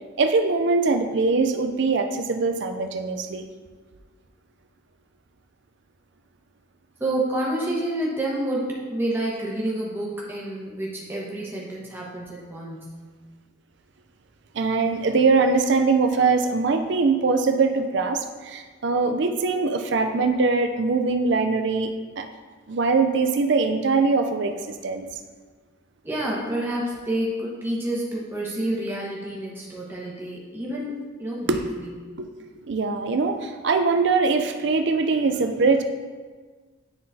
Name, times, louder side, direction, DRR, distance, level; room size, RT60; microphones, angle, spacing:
voice 1, 0.2-3.4 14.5-22.2 22.7-25.1 31.5-31.7 32.2-32.3 32.6-35.8, right 4 dB, 55° right, 6 dB, 0.4 m, -22 dB
voice 2, 7.0-12.9 26.0-31.9, right 1 dB, 10° right, -5 dB, 1.1 m, -29 dB
10.0 x 3.8 x 2.7 m, 1.4 s
head